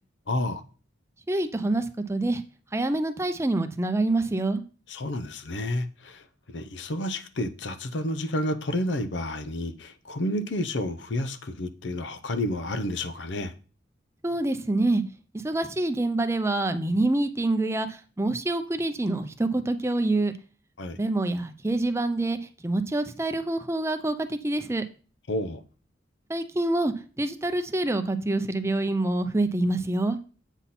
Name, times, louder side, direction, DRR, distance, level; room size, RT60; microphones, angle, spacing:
voice 1, 0.3-0.6 4.9-13.5 20.8-21.0 25.3-25.6, left 1 dB, 80° left, 0.7 m, -30 dB
voice 2, 1.3-2.4 2.7-4.6 14.2-15.0 15.3-20.3 21.0-24.8 26.3-30.2, right 2 dB, 15° right, 0.5 m, -26 dB
8.1 x 5.7 x 4.2 m
head